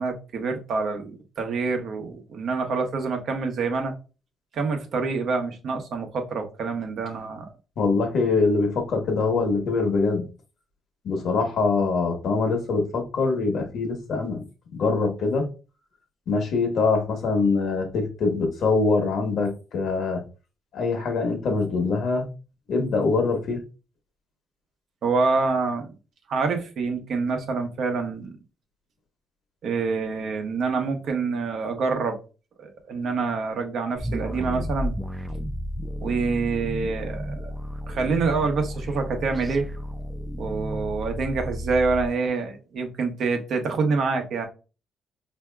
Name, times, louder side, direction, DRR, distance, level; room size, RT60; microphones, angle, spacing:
voice 1, 0.0-3.9 4.5-7.5 25.0-25.9 26.3-28.4 29.6-32.2 32.6-35.0 36.0-37.5 37.9-39.7 40.4-44.5, right 4 dB, 65° right, 5 dB, 0.8 m, -26 dB
voice 2, 7.8-10.3 11.0-14.4 14.7-15.5 16.3-20.2 20.7-22.3 22.7-23.6, left 4 dB, 70° left, 4 dB, 1.0 m, -23 dB
sound 1, 34.0-42.1, equal, 10° right, 0.4 m, -32 dB
4.7 x 2.7 x 2.2 m, 0.33 s
cardioid pair, 90°, 0 cm